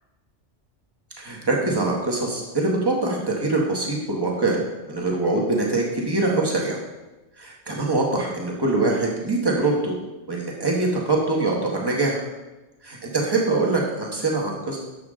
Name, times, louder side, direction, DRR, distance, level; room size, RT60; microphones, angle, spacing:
voice 1, 1.2-4.6 4.9-6.8 7.4-10.0 10.3-12.2 12.8-14.8, right 2 dB, 20° right, -2 dB, 1.6 m, -23 dB
10.5 x 7.0 x 3.8 m, 1.1 s
omnidirectional pair, 1.2 m